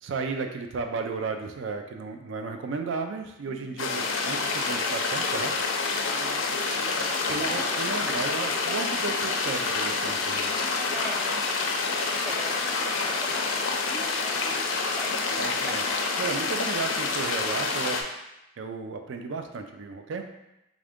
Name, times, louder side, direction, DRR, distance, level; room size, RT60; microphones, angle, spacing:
voice 1, 0.0-5.5 7.3-10.5 15.4-15.8 16.2-18.0 18.6-20.3, right 4 dB, 70° right, 5 dB, 0.4 m, -34 dB
voice 2, 3.5-3.9 6.0-6.6 6.9-7.3 7.5-8.1 10.9-11.4 12.2-12.6 13.0-15.7, equal, ahead, -1 dB, 0.4 m, -42 dB
sound 1, 3.8-18.0, left 4 dB, 80° left, 0.4 m, -28 dB
3.6 x 2.5 x 3.5 m, 0.91 s
head